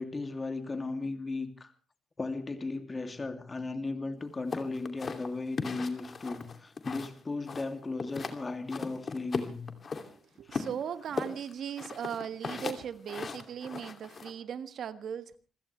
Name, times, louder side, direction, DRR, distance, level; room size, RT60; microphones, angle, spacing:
voice 1, 0.0-1.7 2.2-9.7 10.5-10.7, left 3 dB, 30° left, 2.7 m, -36 dB
sound 1, 4.5-7.2 7.5-8.4 8.7-10.1 10.5-14.3, left 5 dB, 45° left, 2.6 m, -37 dB
voice 2, 10.1-15.4, right 8 dB, 65° right, 1.6 m, -38 dB
27.0 x 16.0 x 3.3 m
cardioid pair, 75°, 0 cm